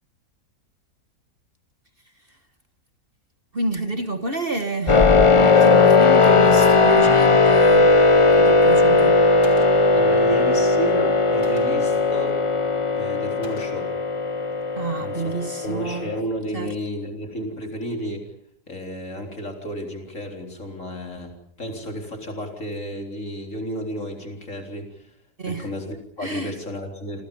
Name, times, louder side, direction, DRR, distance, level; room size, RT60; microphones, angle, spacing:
voice 1, 3.5-8.0 8.4-9.2 14.7-16.1 16.5-16.7 25.4-25.7 26.2-26.5, right 3 dB, 35° right, 1.6 m, -29 dB
sound 1, 4.9-16.2, left 3 dB, 25° left, 0.9 m, -17 dB
Gunshot gunfire, 9.4-10.0 11.4-12.0 13.4-14.0, left 2 dB, 70° left, 4.2 m, -42 dB
voice 2, 9.9-12.4 13.0-13.9 15.0-15.3 15.6-18.3 18.7-25.1 25.4-27.3, equal, 50° left, 4.3 m, -32 dB
28.0 x 27.0 x 5.4 m
omnidirectional pair, 1.7 m